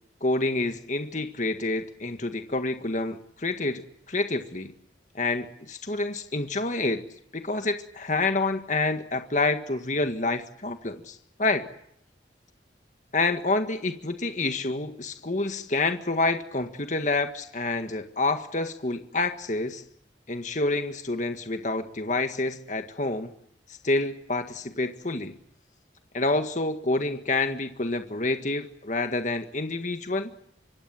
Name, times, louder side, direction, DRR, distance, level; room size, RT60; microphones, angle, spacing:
voice 1, 0.2-4.7 5.1-7.0 7.3-11.7 13.1-19.8 20.3-23.3 23.8-25.3 26.1-30.3, left 2 dB, 45° left, 7 dB, 1.7 m, -28 dB
25.0 x 25.0 x 8.9 m, 0.74 s
head